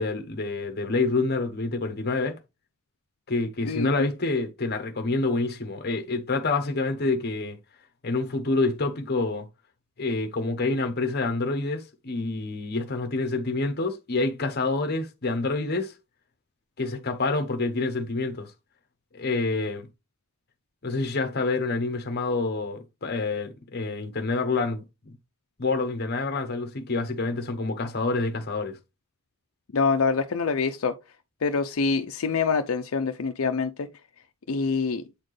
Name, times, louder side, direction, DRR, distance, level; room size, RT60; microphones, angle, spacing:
voice 1, 0.0-2.4 3.3-7.6 8.0-9.5 10.0-15.9 16.8-18.5 19.1-19.9 20.8-25.2 25.6-28.8, left 3 dB, 50° left, 1.0 m, -27 dB
voice 2, 3.6-4.1 29.7-30.9 31.4-33.9 34.5-35.0, left 4 dB, 75° left, 0.6 m, -25 dB
8.3 x 4.3 x 3.1 m
head